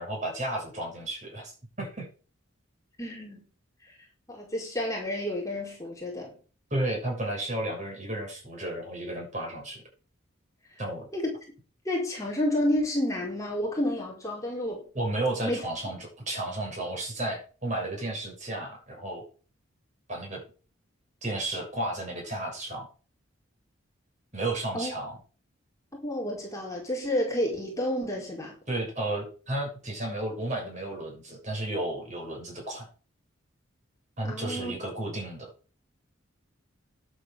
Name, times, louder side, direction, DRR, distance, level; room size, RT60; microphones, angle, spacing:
voice 1, 0.0-2.1 6.7-9.8 10.8-11.0 15.0-19.2 20.1-20.4 21.2-22.9 24.3-25.2 28.7-32.9 34.2-35.5, right 1 dB, 35° right, 7.0 m, -33 dB
voice 2, 3.0-3.4 4.3-6.4 11.1-11.3 11.8-14.9 15.4-15.6 24.7-24.9 26.0-28.6 34.2-34.7, left 1 dB, 15° left, 4.8 m, -30 dB
11.0 x 8.3 x 7.5 m
head